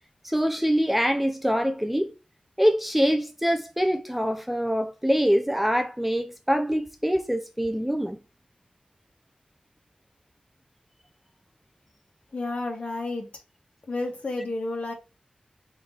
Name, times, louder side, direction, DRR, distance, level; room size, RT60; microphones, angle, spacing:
voice 1, 0.2-2.1 2.6-8.2, equal, 5° right, 0.4 m, -24 dB
voice 2, 12.3-13.3 13.9-14.9, left 2 dB, 55° left, 1.4 m, -31 dB
4.8 x 3.8 x 2.9 m
wide cardioid pair, 95°, 3 cm